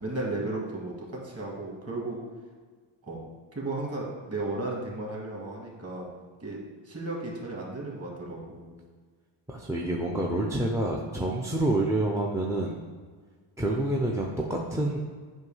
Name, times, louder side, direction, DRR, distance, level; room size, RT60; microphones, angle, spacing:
voice 1, 0.0-2.2 3.0-3.2 3.5-6.1 6.4-8.7, right 2 dB, 30° right, -2 dB, 1.9 m, -34 dB
voice 2, 9.5-12.8 13.6-15.0, right 1 dB, 5° right, 0 dB, 0.5 m, -28 dB
8.0 x 2.7 x 5.5 m, 1.5 s
cardioid pair, 115°, 49 cm